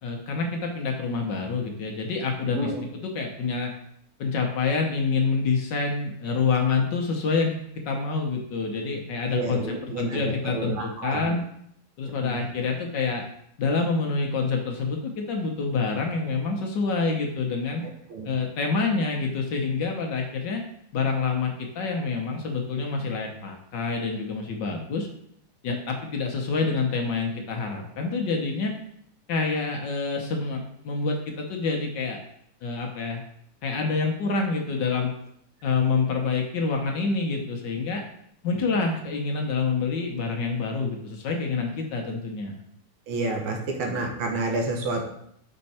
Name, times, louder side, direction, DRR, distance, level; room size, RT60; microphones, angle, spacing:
voice 1, 0.0-3.7 4.2-11.4 12.0-13.3 13.6-17.8 18.2-20.6 20.9-25.1 25.6-28.7 29.3-32.2 32.6-33.2 33.6-35.1 35.6-38.0 38.4-42.6, left 4 dB, 65° left, 2 dB, 1.4 m, -27 dB
voice 2, 2.5-2.9 9.3-11.4 12.0-12.5 18.1-18.3 43.1-45.1, right 2 dB, 80° right, 2 dB, 1.9 m, -30 dB
6.4 x 4.5 x 4.2 m, 0.71 s
omnidirectional pair, 2.3 m